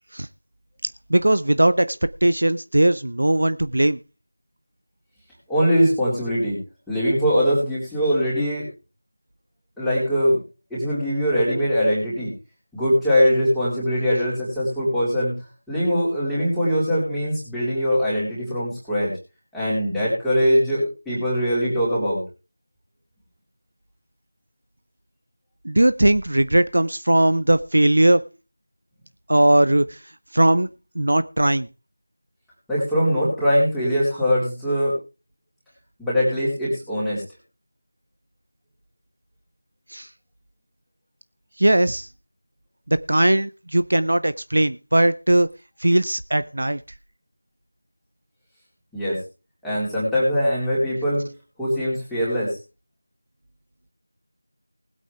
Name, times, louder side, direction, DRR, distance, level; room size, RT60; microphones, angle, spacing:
voice 1, 1.1-4.0 25.6-28.2 29.3-30.0 30.3-30.7 31.0-31.7 39.9-40.1 41.6-42.1 42.9-45.5 45.8-46.8, right 1 dB, 55° right, 13 dB, 0.5 m, -19 dB
voice 2, 5.5-6.6 6.9-8.7 9.8-10.4 10.7-12.3 12.7-15.3 15.7-19.1 19.5-22.2 32.7-34.9 36.0-37.2 48.9-49.2 49.6-51.3 51.6-52.6, equal, ahead, -11 dB, 3.8 m, -22 dB
20.0 x 8.5 x 3.5 m, 0.31 s
figure-of-eight pair, 170°, 0 cm